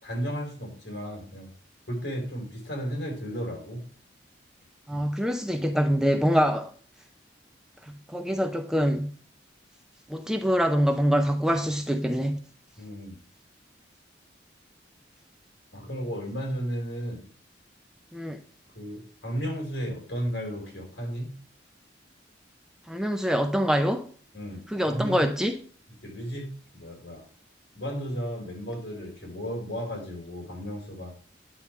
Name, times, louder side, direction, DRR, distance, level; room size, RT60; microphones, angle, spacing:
voice 1, 0.0-1.5 1.9-3.8 4.9-5.1 12.8-13.2 15.7-17.3 18.8-21.3 24.3-25.2 26.0-27.3 27.7-31.2, equal, 70° left, 4.1 m, -34 dB
voice 2, 4.9-6.7 7.9-9.1 10.1-12.4 18.1-18.4 22.9-24.1 24.7-25.6, equal, 5° right, 0.5 m, -25 dB
10.0 x 3.5 x 7.0 m
head